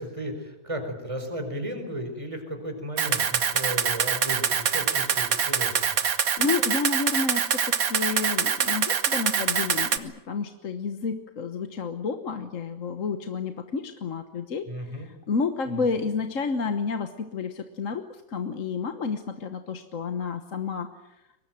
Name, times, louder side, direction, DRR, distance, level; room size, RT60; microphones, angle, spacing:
voice 1, 0.0-6.0 14.7-15.1 15.7-15.8, equal, 15° right, 5 dB, 4.8 m, -34 dB
Camera, 3.0-10.0, right 7 dB, 55° right, 1.6 m, -24 dB
voice 2, 6.4-20.9, left 5 dB, 50° left, 8 dB, 1.5 m, -30 dB
24.0 x 20.0 x 9.2 m, 0.97 s
omnidirectional pair, 1.8 m